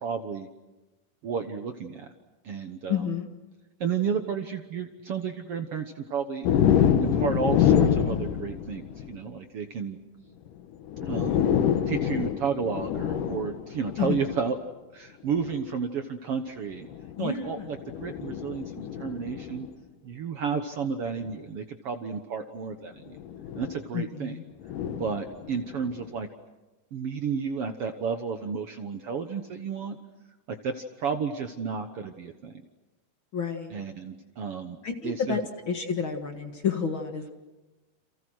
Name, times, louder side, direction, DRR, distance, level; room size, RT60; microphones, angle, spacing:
voice 1, 0.0-0.5 1.2-2.1 2.4-3.1 3.8-6.5 7.0-10.0 11.0-11.5 11.9-14.6 14.9-16.9 17.2-19.7 20.0-23.2 23.6-24.4 25.0-26.3 26.9-30.0 30.5-32.5 33.7-34.8 35.0-35.5, right 6 dB, 60° right, 7 dB, 1.7 m, -32 dB
voice 2, 2.9-3.3 14.0-14.2 17.2-17.7 23.9-24.4 33.3-33.7 34.8-35.4 35.7-37.3, left 7 dB, 45° left, 5 dB, 2.0 m, -30 dB
sound 1, 6.4-9.2 10.5-10.6 10.9-14.5 15.3-15.6 16.8-19.7 21.2-21.4 23.1-23.8 24.6-26.0, left 9 dB, 75° left, 2.7 m, -26 dB
29.5 x 28.0 x 6.3 m, 1.1 s
omnidirectional pair, 3.8 m